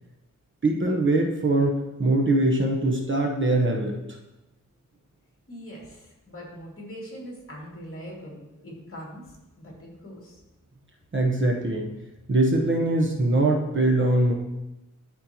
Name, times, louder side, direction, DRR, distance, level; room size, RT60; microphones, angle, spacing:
voice 1, 0.6-3.9 11.1-11.9 12.3-14.3, right 2 dB, 40° right, 0 dB, 1.0 m, -22 dB
voice 2, 5.5-9.2 9.6-10.4, equal, 45° left, -2 dB, 2.4 m, -41 dB
13.0 x 4.4 x 3.0 m, 0.98 s
wide cardioid pair, 110°, 31 cm